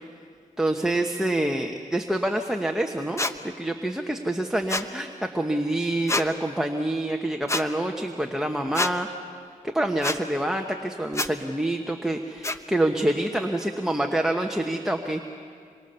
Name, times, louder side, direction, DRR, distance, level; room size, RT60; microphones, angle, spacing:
voice 1, 0.6-9.1 9.6-15.2, right 1 dB, 5° right, 4 dB, 1.2 m, -26 dB
sound 1, 3.2-3.3 4.7-4.9 6.1-6.3 7.5-7.6 8.7-8.9 10.0-10.2 11.1-11.3 12.4-12.6, left 2 dB, 20° left, 1.0 m, -26 dB
26.5 x 24.5 x 6.9 m, 2.2 s
wide cardioid pair, 100°, 14 cm